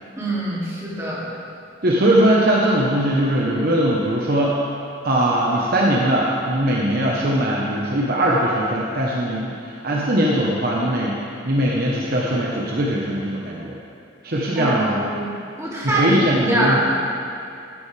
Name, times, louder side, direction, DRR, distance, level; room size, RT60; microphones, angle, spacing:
voice 1, 0.2-1.3 14.6-15.3 15.6-16.8, right 1 dB, 15° right, -8 dB, 2.6 m, -23 dB
voice 2, 1.8-4.6 5.0-11.1 11.4-13.8 14.2-15.0 15.8-16.8, right 1 dB, 50° right, -4 dB, 1.1 m, -20 dB
13.5 x 10.0 x 3.4 m, 2.6 s
head